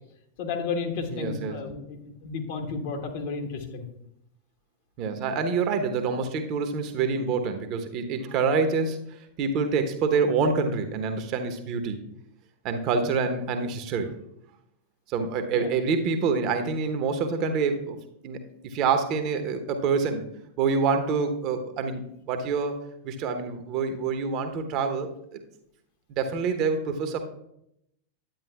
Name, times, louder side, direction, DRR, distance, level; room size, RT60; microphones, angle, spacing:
voice 1, 0.4-3.8 15.5-15.7, left 5 dB, 50° left, 2 dB, 1.3 m, -32 dB
voice 2, 1.1-1.7 5.0-9.0 9.4-12.0 12.6-14.1 15.1-18.0 18.2-20.2 20.6-22.8 23.0-25.4 26.1-27.2, right 5 dB, 40° right, 6 dB, 0.9 m, -26 dB
10.5 x 9.0 x 2.3 m, 0.78 s
figure-of-eight pair, 90°, 0 cm